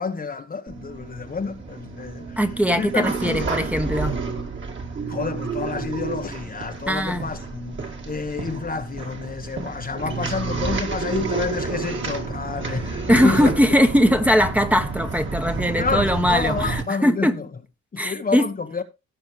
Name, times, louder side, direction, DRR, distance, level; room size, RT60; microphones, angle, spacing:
voice 1, 0.0-2.4 2.7-3.5 5.1-7.8 8.1-13.5 15.8-17.3 17.9-18.8, left 5 dB, 30° left, 1.1 m, -29 dB
sound 1, 0.7-16.8, right 4 dB, 40° right, 2.5 m, -30 dB
voice 2, 2.4-4.2 6.9-7.3 13.1-17.4 18.0-18.4, equal, 5° right, 1.3 m, -20 dB
16.5 x 6.2 x 3.1 m
cardioid pair, 90°, 30 cm